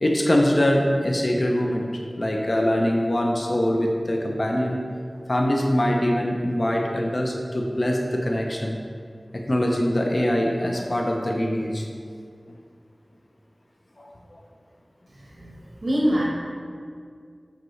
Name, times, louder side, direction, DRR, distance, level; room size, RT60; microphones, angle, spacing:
voice 1, 0.0-1.9 2.2-4.8 5.3-8.8 9.3-11.9 14.0-14.4, left 1 dB, 50° left, 1 dB, 0.6 m, -23 dB
voice 2, 15.2-16.2, equal, 70° right, -5 dB, 1.2 m, -25 dB
7.9 x 5.9 x 3.2 m, 2.2 s
wide cardioid pair, 65°, 0 cm